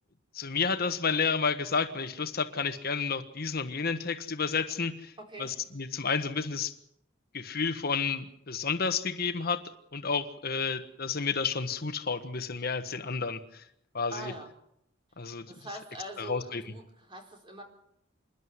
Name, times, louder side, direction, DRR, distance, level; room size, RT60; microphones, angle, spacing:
voice 1, 0.3-5.1 5.4-6.7 7.3-9.6 9.9-13.6 13.9-14.3 15.2-15.5 16.2-16.6, left 5 dB, 50° left, 8 dB, 1.3 m, -31 dB
voice 2, 5.2-5.5 14.1-14.5 15.5-17.6, right 1 dB, 25° right, 2 dB, 4.5 m, -43 dB
27.0 x 11.5 x 9.6 m, 0.76 s
head